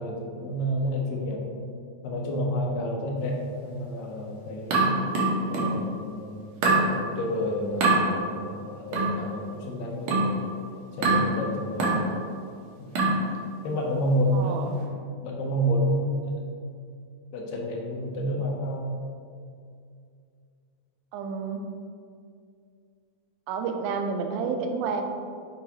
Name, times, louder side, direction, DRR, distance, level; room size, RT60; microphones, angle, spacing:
voice 1, 0.0-1.5 2.0-4.9 5.5-10.4 11.0-12.0 12.8-13.0 13.6-14.8 15.2-16.3 17.3-18.9, equal, 75° left, -1 dB, 2.4 m, -29 dB
sound 1, 4.7-5.8 6.6-6.9 7.8-8.0 8.9-9.2 10.1-10.4 11.0-11.3 11.8-12.1 12.9-13.2, right 3 dB, 65° right, 2.0 m, -23 dB
voice 2, 14.3-14.7 21.1-21.6 23.5-25.0, right 5 dB, 90° right, 4 dB, 2.4 m, -30 dB
9.1 x 4.6 x 2.9 m, 2.3 s
omnidirectional pair, 4.2 m